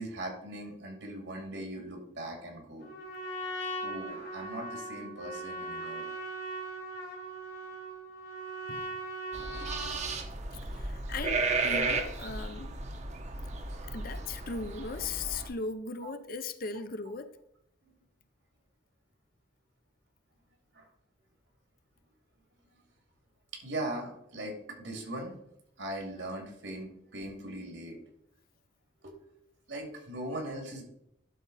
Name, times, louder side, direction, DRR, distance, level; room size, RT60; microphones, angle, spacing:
voice 1, 0.0-2.9 3.8-6.1 16.0-16.1 17.8-17.9 20.7-20.9 22.8-22.9 23.5-25.3 25.8-28.0 29.0-29.2 29.7-30.8, right 1 dB, 80° right, 2.6 m, -40 dB
Trumpet, 2.8-10.1, right 1 dB, 70° left, 3.1 m, -39 dB
sound 1, 9.3-15.5, right 3 dB, 40° right, 0.8 m, -34 dB
voice 2, 10.7-12.7 13.9-17.4, left 4 dB, 50° left, 0.6 m, -38 dB
11.5 x 4.1 x 4.1 m
head